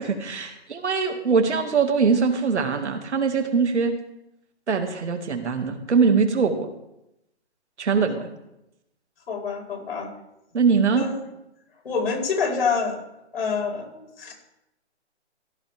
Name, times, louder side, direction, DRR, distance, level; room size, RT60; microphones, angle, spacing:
voice 1, 0.2-3.9 4.7-6.7 7.8-8.3 10.5-11.0, right 5 dB, 75° right, 5 dB, 2.1 m, -22 dB
voice 2, 9.3-10.1 10.9-11.2 11.8-13.0 13.3-14.3, left 5 dB, 55° left, -1 dB, 5.1 m, -27 dB
16.0 x 10.5 x 3.5 m, 0.87 s
hypercardioid pair, 165°, 34 cm